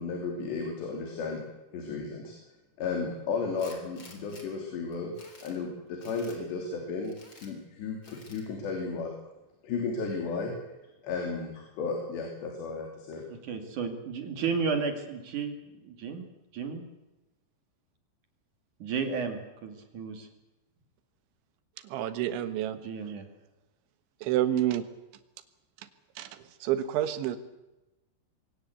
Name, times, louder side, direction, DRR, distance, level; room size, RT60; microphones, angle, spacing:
voice 1, 0.0-1.4 1.7-2.3 2.8-5.1 5.4-7.2 7.4-9.1 9.6-10.5 11.0-13.2, left 4 dB, 70° left, 2 dB, 5.2 m, -34 dB
Tools, 3.6-4.5 4.9-5.6 6.0-6.4 7.0-7.5 8.0-8.5, left 3 dB, 25° left, 3.9 m, -52 dB
voice 2, 13.3-15.5 15.9-16.2 16.5-16.8 18.8-20.3 22.8-23.2, right 5 dB, 50° right, 6 dB, 3.2 m, -33 dB
voice 3, 21.8-22.8 24.2-24.8 26.2-27.4, right 12 dB, 85° right, 11 dB, 3.8 m, -29 dB
23.5 x 17.5 x 8.1 m, 1.0 s
omnidirectional pair, 5.2 m